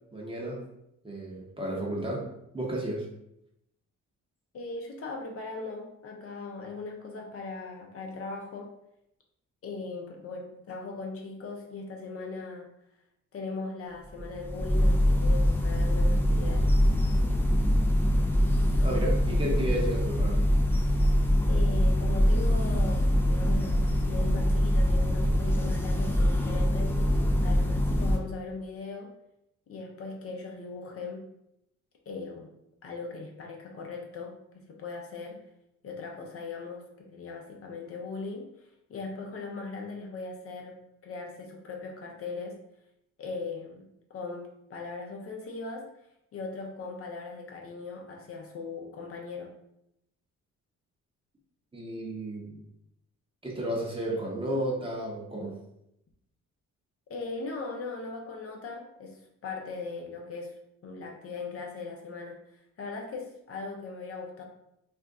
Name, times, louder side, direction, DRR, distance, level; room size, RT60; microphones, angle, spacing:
voice 1, 0.1-0.7 1.0-2.3 2.5-3.1 18.8-20.4 51.7-52.6 53.4-55.5, right 1 dB, 20° right, -2 dB, 0.8 m, -32 dB
voice 2, 4.5-8.7 9.6-12.7 13.3-16.7 21.5-26.9 27.4-29.1 29.7-31.3 32.1-32.5 32.8-35.4 35.8-42.6 43.2-45.9 46.3-49.5 57.1-64.4, left 3 dB, 50° left, 1 dB, 0.6 m, -39 dB
sound 1, 14.1-28.2, equal, 5° left, 0.4 m, -24 dB
2.5 x 2.2 x 3.5 m, 0.80 s
cardioid pair, 90°, 30 cm